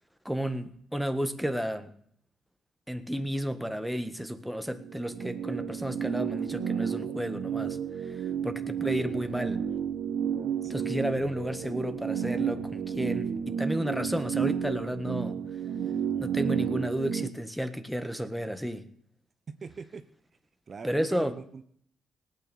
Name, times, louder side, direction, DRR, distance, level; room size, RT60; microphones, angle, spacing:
voice 1, 0.2-1.9 2.9-7.8 8.0-8.2 8.4-9.6 10.7-15.4 16.2-18.8 20.8-21.4, equal, ahead, 10 dB, 1.5 m, -32 dB
sound 1, 4.8-17.3, right 8 dB, 80° right, 1.2 m, -32 dB
voice 2, 10.6-10.9 19.6-20.0 20.7-21.6, right 5 dB, 45° right, 10 dB, 1.1 m, -42 dB
18.5 x 9.0 x 6.9 m, 0.63 s
cardioid pair, 90°, 0 cm